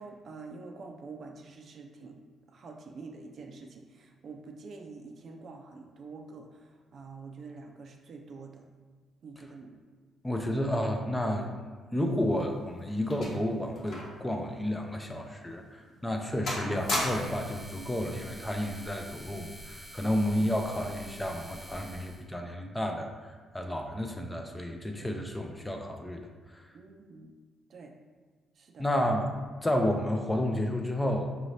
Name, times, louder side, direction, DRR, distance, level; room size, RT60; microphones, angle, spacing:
voice 1, 0.0-2.2 2.5-8.6 9.2-9.8 26.7-27.3 27.7-27.9 28.6-28.9, right 4 dB, 55° right, 3 dB, 0.5 m, -46 dB
voice 2, 10.2-23.1 23.5-26.6 28.8-29.3 29.6-31.3, left 1 dB, 10° left, 3 dB, 0.5 m, -31 dB
sound 1, 12.1-14.3 14.6-14.7 15.4-15.5 15.9-16.2 16.5-17.5 18.5-18.8, left 1 dB, 65° left, 1.0 m, -35 dB
sound 2, 16.7-22.2, right 1 dB, 15° right, 0.9 m, -47 dB
4.7 x 2.7 x 3.2 m, 1.4 s
cardioid pair, 90°, 0 cm